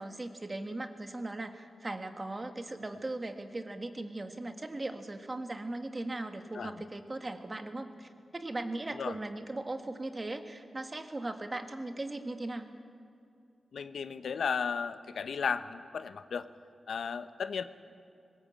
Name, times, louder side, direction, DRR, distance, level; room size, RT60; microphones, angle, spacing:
voice 1, 0.0-12.7, right 2 dB, 25° right, 7 dB, 1.6 m, -38 dB
voice 2, 13.7-16.5 16.9-17.6, left 6 dB, 80° left, 11 dB, 0.9 m, -34 dB
22.5 x 20.0 x 8.7 m, 2.5 s
wide cardioid pair, 135°, 0 cm